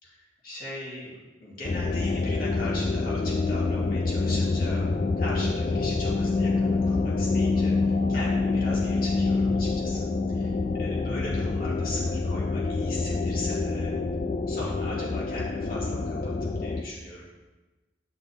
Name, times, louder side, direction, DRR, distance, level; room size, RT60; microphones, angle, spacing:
voice 1, 0.0-4.9 5.2-14.0 14.5-17.3, left 1 dB, 55° left, -6 dB, 2.6 m, -39 dB
sound 1, 1.6-16.8, left 3 dB, 40° left, 0.4 m, -26 dB
9.0 x 6.1 x 3.6 m, 1.2 s
head